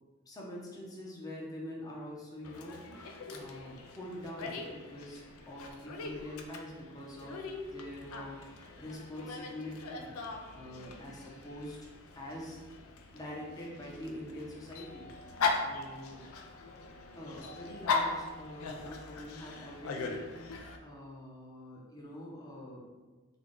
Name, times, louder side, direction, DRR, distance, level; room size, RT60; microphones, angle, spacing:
voice 1, 0.3-10.1 10.5-11.9 12.2-12.8 13.1-16.2 17.1-20.4 20.8-22.9, left 1 dB, 15° left, -4 dB, 0.7 m, -45 dB
Dog, 2.4-20.8, left 4 dB, 75° left, 0.4 m, -39 dB
3.4 x 2.3 x 3.7 m, 1.3 s
head